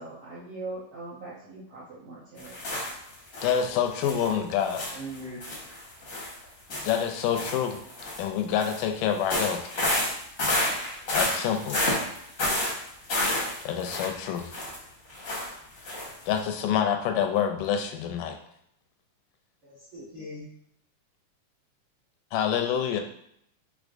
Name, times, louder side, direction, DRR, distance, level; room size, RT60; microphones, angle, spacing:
voice 1, 0.0-2.6, right 2 dB, 75° right, -7 dB, 1.3 m, -41 dB
sound 1, 2.4-3.6 4.0-4.3 4.6-8.2 8.6-8.8 9.1-14.8 15.1-15.5 15.8-16.1 16.4-16.5, left 1 dB, 65° left, 0.8 m, -30 dB
voice 2, 3.4-4.8 6.8-7.8 8.2-9.7 11.1-12.0 13.7-14.5 16.3-18.4 22.3-23.0, left 8 dB, 90° left, 5 dB, 2.2 m, -27 dB
voice 3, 4.9-5.4 19.6-20.5, right 1 dB, 55° right, -8 dB, 0.8 m, -40 dB
6.1 x 3.3 x 2.5 m, 0.71 s
omnidirectional pair, 3.7 m